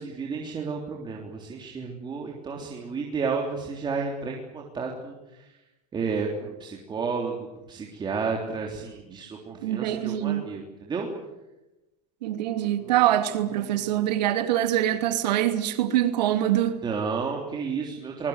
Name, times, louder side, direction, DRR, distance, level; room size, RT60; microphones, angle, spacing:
voice 1, 0.0-5.5 5.9-11.1 12.8-13.0 13.7-14.1 16.8-18.3, right 5 dB, 20° right, 3.5 m, -32 dB
voice 2, 9.6-10.5 12.2-16.8, right 12 dB, 80° right, 2.9 m, -24 dB
25.0 x 21.5 x 8.1 m
supercardioid pair, 130°, 21 cm